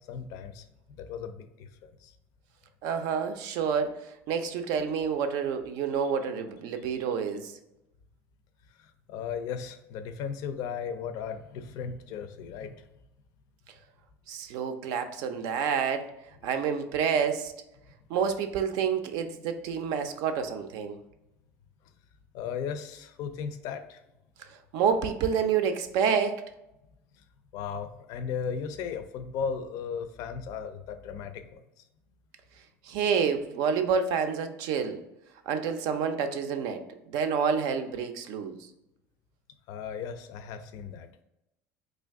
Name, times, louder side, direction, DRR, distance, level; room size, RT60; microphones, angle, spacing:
voice 1, 0.0-2.1 8.8-12.8 22.3-24.0 27.5-31.6 39.7-41.2, left 6 dB, 65° left, 9 dB, 0.4 m, -36 dB
voice 2, 2.8-4.0 4.3-7.5 14.3-16.1 16.4-17.5 18.1-21.0 24.7-26.4 32.8-35.0 35.5-36.8 37.1-38.6, right 6 dB, 70° right, 7 dB, 0.5 m, -28 dB
3.2 x 2.5 x 3.5 m, 0.89 s
supercardioid pair, 100°, 7 cm